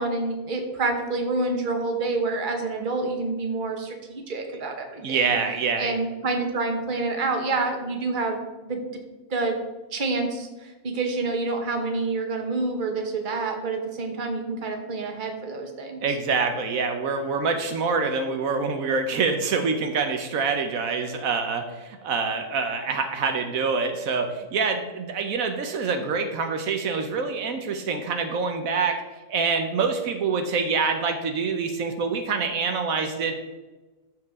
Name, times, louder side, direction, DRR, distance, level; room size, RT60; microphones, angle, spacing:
voice 1, 0.0-5.4 5.8-8.4 8.6-8.8 9.3-9.6 9.9-16.0, right 3 dB, 40° right, 3 dB, 1.3 m, -28 dB
voice 2, 5.0-5.9 16.0-29.0 29.3-33.4, right 5 dB, 80° right, 6 dB, 1.3 m, -26 dB
13.0 x 4.8 x 3.6 m, 1.1 s
omnidirectional pair, 1.4 m